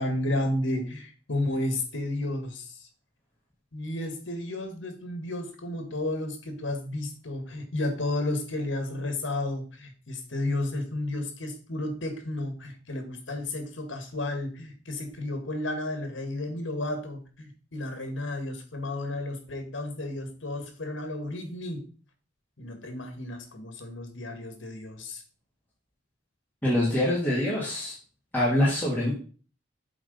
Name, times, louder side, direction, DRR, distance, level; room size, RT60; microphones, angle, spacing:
voice 1, 0.0-2.9 3.7-21.8 22.6-25.2, left 1 dB, 85° left, 5 dB, 1.9 m, -32 dB
voice 2, 26.6-27.9 28.3-29.1, left 1 dB, 10° left, -7 dB, 2.1 m, -24 dB
7.9 x 3.9 x 5.4 m, 0.39 s
head